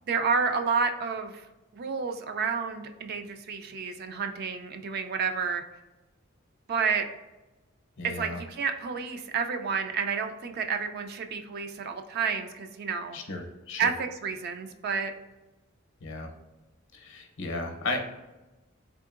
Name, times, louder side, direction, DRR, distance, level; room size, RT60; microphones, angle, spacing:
voice 1, 0.1-1.4 1.7-5.6 6.7-7.1 8.0-13.2 13.8-15.1, right 5 dB, 50° right, 6 dB, 0.3 m, -30 dB
voice 2, 8.0-8.4 13.1-13.9 16.0-16.3 16.9-18.0, left 2 dB, 65° left, 4 dB, 0.7 m, -34 dB
3.6 x 3.6 x 2.4 m, 1.0 s
head